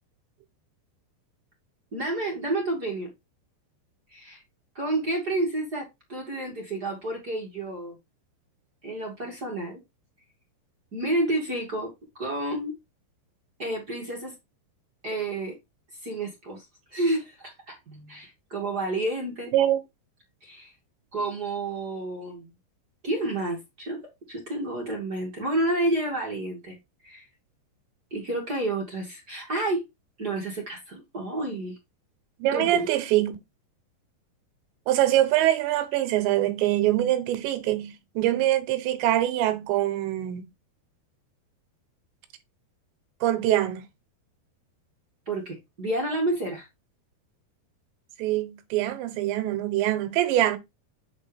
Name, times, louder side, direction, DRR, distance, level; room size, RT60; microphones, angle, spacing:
voice 1, 1.9-3.1 4.1-4.4 4.7-7.9 8.8-9.8 10.9-12.7 13.6-14.3 15.0-15.6 16.0-16.7 16.9-19.5 20.4-20.7 21.1-22.5 23.0-24.0 24.3-26.8 27.0-27.3 28.1-29.8 30.2-31.8 32.5-32.9 45.3-46.7, right 2 dB, 30° right, 1.9 m, -30 dB
voice 2, 32.4-33.4 34.9-40.4 43.2-43.9 48.2-50.6, right 13 dB, 90° right, 3.3 m, -24 dB
8.4 x 5.0 x 3.5 m
omnidirectional pair, 5.0 m